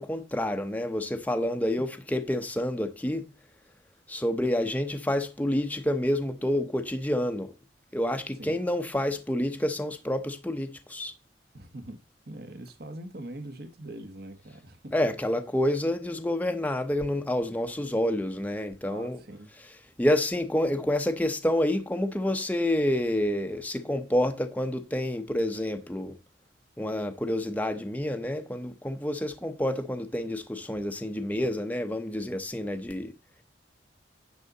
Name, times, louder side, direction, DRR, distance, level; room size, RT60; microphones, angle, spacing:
voice 1, 0.0-3.3 4.1-7.5 7.9-11.1 14.9-19.2 20.0-26.2 26.8-33.1, left 1 dB, 10° left, 0.8 m, -28 dB
voice 2, 11.5-14.9 18.8-19.5, right 1 dB, 55° right, 1.7 m, -43 dB
10.5 x 6.3 x 4.0 m
head